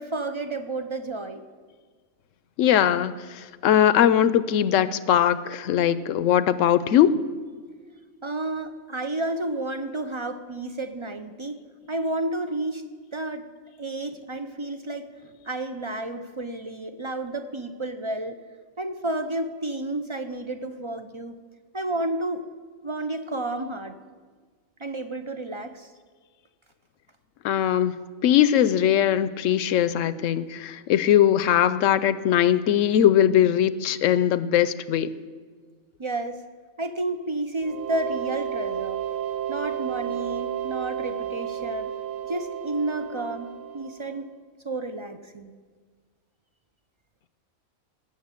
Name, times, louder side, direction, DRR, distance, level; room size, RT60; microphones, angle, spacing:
voice 1, 0.0-1.4 8.2-12.8 13.1-13.4 13.8-15.1 15.5-18.4 18.8-21.4 21.7-22.4 22.8-23.9 24.8-25.9 34.1-34.2 36.0-36.4 36.8-39.0 39.5-41.9 42.2-44.3 44.6-45.5, right 2 dB, 40° right, 9 dB, 0.4 m, -31 dB
voice 2, 2.6-7.2 27.4-35.1, left 10 dB, 70° left, 15 dB, 0.9 m, -20 dB
sound 1, 37.6-44.2, right 10 dB, 65° right, 1.1 m, -32 dB
18.5 x 7.1 x 8.2 m, 1.6 s
omnidirectional pair, 1.4 m